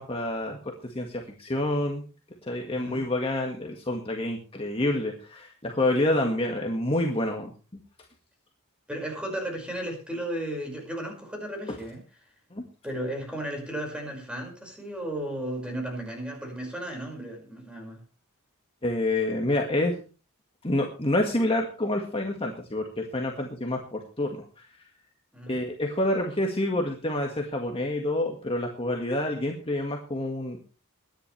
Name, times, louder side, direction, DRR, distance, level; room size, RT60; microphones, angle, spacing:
voice 1, 0.0-2.0 2.4-7.5 12.5-12.6 18.8-20.0 20.6-24.5 25.5-30.6, left 1 dB, 25° left, 2 dB, 1.8 m, -28 dB
voice 2, 2.7-3.0 8.9-12.0 12.8-18.0 25.3-25.6, right 1 dB, 5° right, 1 dB, 5.6 m, -34 dB
22.5 x 10.5 x 3.4 m, 0.34 s
head